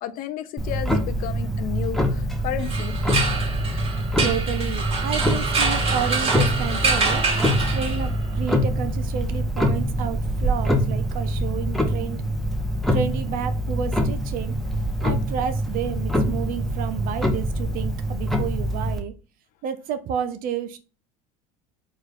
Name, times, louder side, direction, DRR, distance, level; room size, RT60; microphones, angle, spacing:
voice 1, 0.0-3.0, left 10 dB, 50° left, 0.5 m, -32 dB
Clock, 0.6-19.0, equal, ahead, 0.8 m, -25 dB
sound 1, 2.6-8.3, right 4 dB, 30° right, 1.8 m, -26 dB
voice 2, 4.2-7.2 7.7-12.2 12.9-14.6 15.0-19.1 19.6-20.8, right 8 dB, 55° right, 0.5 m, -30 dB
4.5 x 2.4 x 3.5 m
hypercardioid pair, 90°, 18 cm